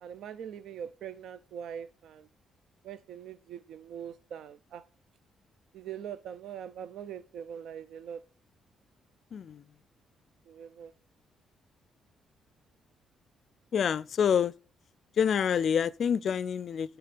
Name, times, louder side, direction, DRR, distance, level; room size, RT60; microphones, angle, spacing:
voice 1, 0.0-2.3 2.8-4.8 5.7-8.2 10.5-10.9, right 8 dB, 75° right, 0.5 m, -42 dB
voice 2, 9.3-9.6 13.7-14.5 15.2-17.0, left 7 dB, 55° left, 0.3 m, -27 dB
9.1 x 3.5 x 6.8 m
cardioid pair, 90°, 0 cm